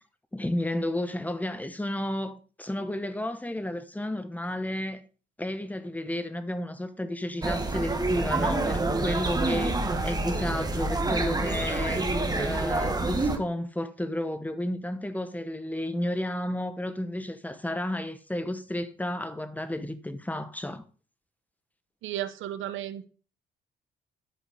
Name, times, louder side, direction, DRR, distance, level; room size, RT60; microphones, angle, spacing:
voice 1, 0.3-5.0 5.4-20.8, left 1 dB, 10° left, 1.1 m, -32 dB
sound 1, 7.4-13.4, right 2 dB, 20° right, 1.3 m, -27 dB
voice 2, 22.0-23.0, right 12 dB, 80° right, 0.9 m, -34 dB
11.5 x 4.9 x 5.1 m
cardioid pair, 90°, 20 cm